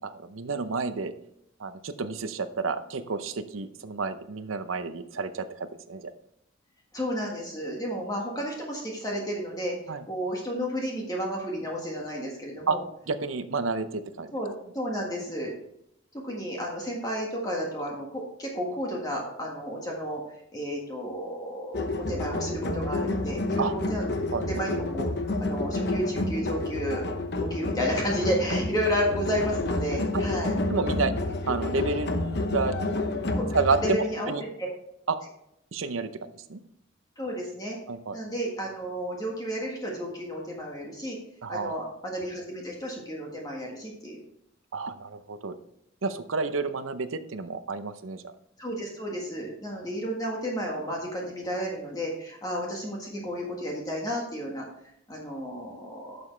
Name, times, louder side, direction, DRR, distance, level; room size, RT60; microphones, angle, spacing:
voice 1, 0.0-1.1 1.6-6.1 9.9-10.0 12.7-12.8 13.1-14.3 23.6-23.7 24.3-24.5 30.1-30.2 30.7-31.1 31.5-32.1 32.5-32.8 33.5-34.4 35.1-35.2 35.7-36.1 36.5-36.6 37.9-38.2 41.4-41.9 44.7-45.6 46.0-48.3, right 4 dB, 80° right, 11 dB, 0.7 m, -30 dB
voice 2, 6.9-9.7 10.1-12.8 14.3-15.5 16.2-20.2 20.5-24.0 24.5-25.1 25.4-27.1 27.4-30.5 33.3-33.5 33.8-34.7 37.2-37.8 38.1-41.2 41.5-44.2 48.6-54.6 55.1-56.2, equal, 20° left, -2 dB, 1.6 m, -32 dB
sound 1, 21.7-33.9, left 2 dB, 55° left, 0.9 m, -29 dB
11.0 x 7.0 x 3.3 m, 0.77 s
head